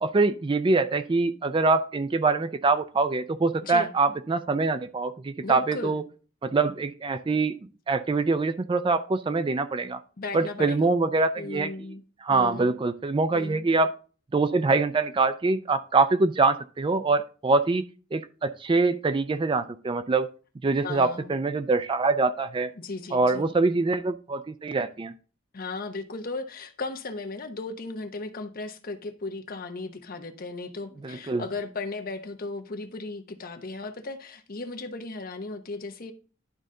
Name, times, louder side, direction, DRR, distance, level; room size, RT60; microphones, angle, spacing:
voice 1, 0.0-6.0 6.4-7.6 7.9-10.0 10.3-11.7 12.2-13.9 14.3-17.8 18.1-20.3 20.6-22.7 23.1-25.1 31.0-31.4, right 3 dB, 25° right, 0.4 m, -24 dB
voice 2, 3.6-3.9 5.4-6.0 10.2-10.9 11.4-12.0 12.3-12.8 13.3-13.6 20.8-21.3 22.8-23.5 25.5-36.1, left 3 dB, 45° left, 0.9 m, -36 dB
11.0 x 4.0 x 3.7 m
head